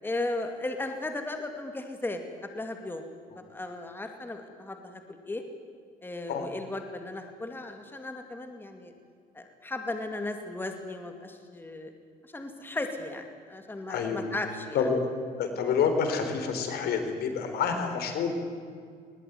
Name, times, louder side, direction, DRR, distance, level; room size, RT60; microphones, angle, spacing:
voice 1, 0.0-3.0 3.3-5.4 6.0-8.9 9.3-11.9 12.3-14.9 17.7-17.8, left 2 dB, 10° left, 5 dB, 2.5 m, -36 dB
voice 2, 13.9-14.2 14.7-15.0 15.4-18.4, left 6 dB, 70° left, 6 dB, 4.1 m, -28 dB
21.0 x 21.0 x 9.4 m, 2.1 s
cardioid pair, 110°, 17 cm